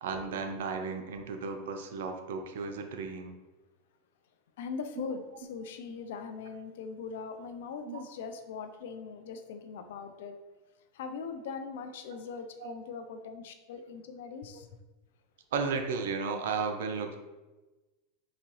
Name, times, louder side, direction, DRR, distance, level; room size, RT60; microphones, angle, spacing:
voice 1, 0.0-3.3 5.0-5.1 7.9-8.0 12.1-12.2 12.6-12.7 15.5-17.2, right 5 dB, 80° right, 5 dB, 0.4 m, -34 dB
voice 2, 4.6-10.4 10.9-14.7, left 5 dB, 80° left, 8 dB, 0.4 m, -41 dB
3.9 x 2.7 x 3.0 m, 1.1 s
supercardioid pair, 135°, 0 cm